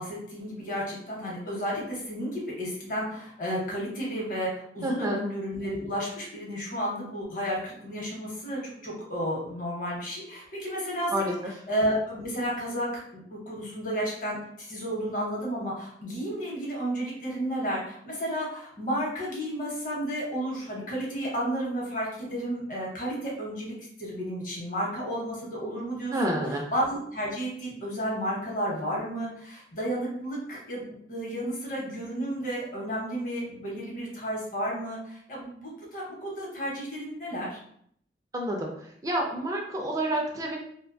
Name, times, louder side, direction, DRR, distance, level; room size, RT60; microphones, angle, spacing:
voice 1, 0.0-37.6, equal, 50° left, -3 dB, 0.9 m, -32 dB
voice 2, 4.8-5.2 11.1-11.3 26.1-26.6 38.3-38.7 39.0-40.6, right 1 dB, 20° right, 0 dB, 0.3 m, -28 dB
2.4 x 2.1 x 2.5 m, 0.66 s
head